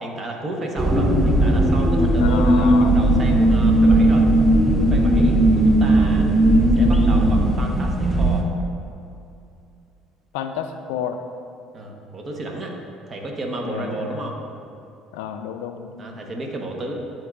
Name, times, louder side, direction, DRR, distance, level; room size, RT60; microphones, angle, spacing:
voice 1, 0.0-4.2 4.9-6.3 6.8-8.4 11.7-12.7 13.1-14.4 16.0-16.9, right 1 dB, 40° right, 1 dB, 1.2 m, -32 dB
sound 1, 0.8-8.4, right 1 dB, 10° right, 0.9 m, -17 dB
voice 2, 2.2-3.0 10.3-11.2 13.6-14.2 15.1-16.0, left 8 dB, 80° left, 7 dB, 0.4 m, -31 dB
11.0 x 4.5 x 2.5 m, 2.6 s
supercardioid pair, 75°, 0 cm